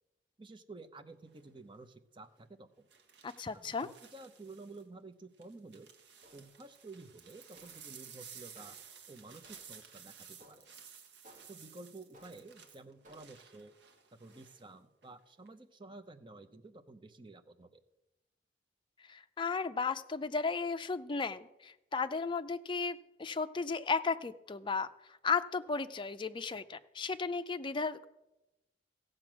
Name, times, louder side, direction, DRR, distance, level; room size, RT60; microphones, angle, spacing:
voice 1, 0.4-2.9 3.5-5.9 6.3-8.8 9.1-10.7 11.5-13.8 14.2-17.8, right 3 dB, 30° right, 9 dB, 0.7 m, -52 dB
sound 1, 1.3-1.6 2.9-4.8 5.4-14.6 15.0-15.5, right 7 dB, 80° right, 1.4 m, -55 dB
voice 2, 3.2-3.9 19.1-28.1, left 4 dB, 30° left, 10 dB, 0.5 m, -35 dB
sound 2, 6.2-6.7 7.5-8.0 8.5-9.0 9.4-9.9 10.4-10.8 11.2-11.7 12.1-12.6 13.0-13.5, equal, 45° right, 2.2 m, -62 dB
15.5 x 7.8 x 6.1 m, 0.98 s
head